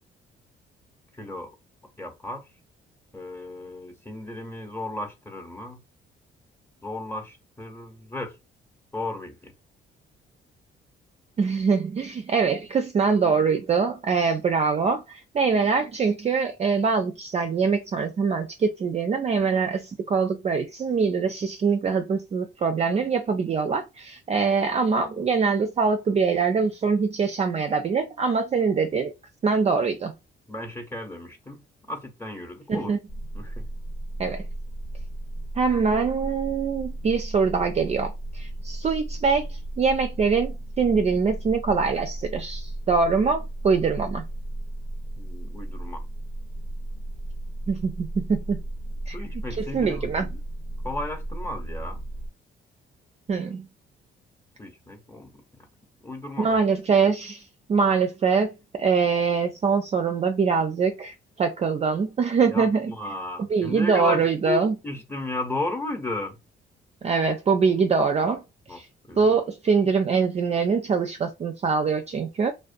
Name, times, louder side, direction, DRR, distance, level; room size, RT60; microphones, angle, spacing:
voice 1, 1.1-1.5 2.0-2.5 3.1-5.8 6.8-8.4 8.9-9.5 30.5-31.6 31.9-32.9 33.3-33.7 45.2-46.0 49.1-50.4 50.8-52.0 54.6-55.4 56.0-56.6 62.5-66.4 68.7-69.4, left 1 dB, 10° left, 0.8 m, -34 dB
voice 2, 11.4-29.1 29.4-30.1 32.7-33.0 34.2-34.5 35.6-39.5 39.8-44.2 47.7-48.6 49.1-49.2 49.7-50.3 53.3-53.7 56.4-57.4 57.7-62.9 63.5-64.7 67.0-68.4 68.7-68.9 69.2-72.5, right 5 dB, 35° right, 0.4 m, -23 dB
sound 1, 33.1-52.3, right 1 dB, 85° left, 1.3 m, -35 dB
2.4 x 2.1 x 2.5 m
cardioid pair, 90°, 20 cm